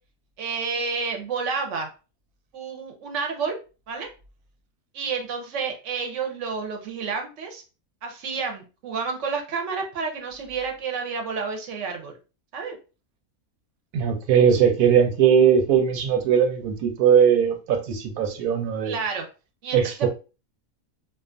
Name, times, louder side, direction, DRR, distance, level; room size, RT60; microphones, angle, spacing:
voice 1, 0.4-1.9 2.5-3.6 3.9-4.1 4.9-7.6 8.0-12.2 12.5-12.8 18.8-19.3 19.6-20.1, right 5 dB, 65° right, 0.9 m, -30 dB
voice 2, 13.9-19.0 19.7-20.1, right 7 dB, 90° right, 1.1 m, -19 dB
2.4 x 2.3 x 2.4 m
omnidirectional pair, 1.5 m